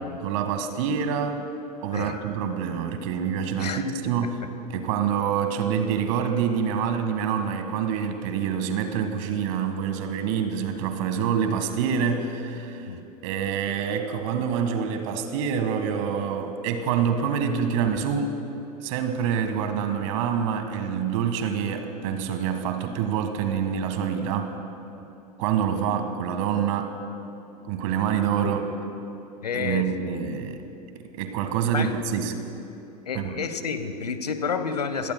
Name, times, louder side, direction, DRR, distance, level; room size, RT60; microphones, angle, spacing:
voice 1, 0.2-1.4 1.8-4.4 4.7-12.9 13.2-18.3 18.8-24.5 25.4-26.9 27.6-28.6 29.5-30.6 31.1-32.3 33.1-33.4, right 7 dB, 55° right, 7 dB, 1.6 m, -26 dB
voice 2, 28.4-28.8 29.4-30.7 31.7-31.9 33.1-35.1, left 5 dB, 80° left, 10 dB, 1.0 m, -31 dB
28.5 x 17.5 x 2.2 m, 2.9 s
figure-of-eight pair, 85°, 20 cm